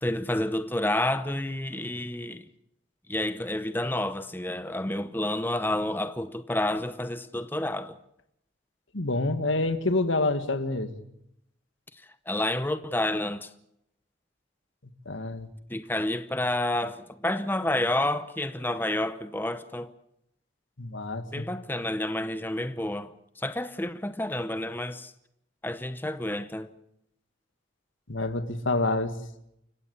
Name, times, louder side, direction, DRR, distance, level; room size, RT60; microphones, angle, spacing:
voice 1, 0.0-2.4 3.1-8.0 11.9-13.5 15.7-19.9 21.3-25.1 25.6-26.7, left 1 dB, 10° left, 0.7 m, -29 dB
voice 2, 8.9-10.9 15.1-15.5 20.8-21.5 28.1-29.1, left 2 dB, 80° left, 2.0 m, -27 dB
29.5 x 16.0 x 7.1 m
head